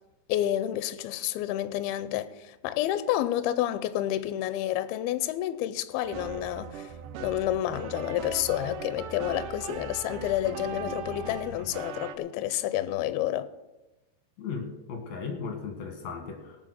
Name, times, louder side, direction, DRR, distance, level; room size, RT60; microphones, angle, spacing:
voice 1, 0.3-6.9 7.2-13.5, left 13 dB, 80° left, 2.5 m, -29 dB
sound 1, 6.0-12.2, right 7 dB, 75° right, 2.0 m, -39 dB
voice 2, 10.8-11.7 14.4-16.6, left 5 dB, 55° left, 2.7 m, -37 dB
18.5 x 7.0 x 6.4 m
omnidirectional pair, 4.6 m